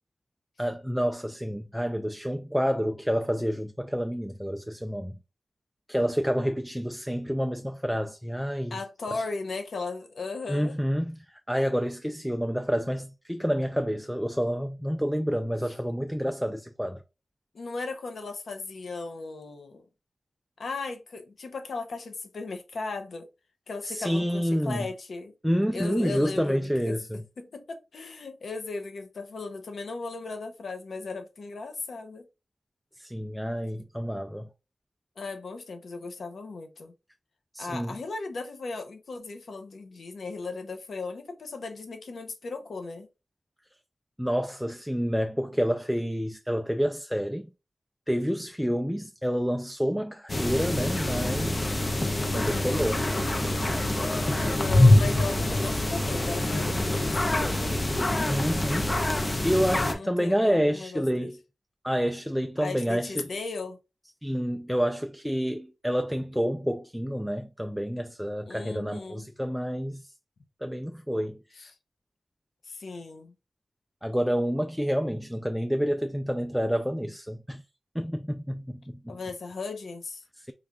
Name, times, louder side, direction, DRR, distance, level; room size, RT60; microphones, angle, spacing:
voice 1, 0.6-5.2 5.9-8.8 9.1-9.2 10.5-17.0 23.8-24.9 25.4-27.2 33.0-34.5 37.5-38.0 44.2-47.5 48.1-51.8 52.3-53.0 58.3-61.4 61.8-63.3 64.2-70.1 70.6-71.6 74.0-77.6 77.9-79.2 80.4-80.5, equal, ahead, 0.3 m, -28 dB
voice 2, 8.7-10.8 17.5-19.9 20.6-23.3 23.7-25.3 25.7-27.0 27.4-32.3 35.2-36.9 37.6-43.1 52.0-52.8 54.4-57.7 59.7-61.3 62.6-63.8 68.5-69.3 71.6-71.7 72.6-73.3 79.1-80.2, left 3 dB, 80° left, 0.6 m, -37 dB
sound 1, 50.3-59.9, left 1 dB, 30° left, 0.6 m, -25 dB
3.2 x 2.3 x 3.6 m
wide cardioid pair, 80°, 0 cm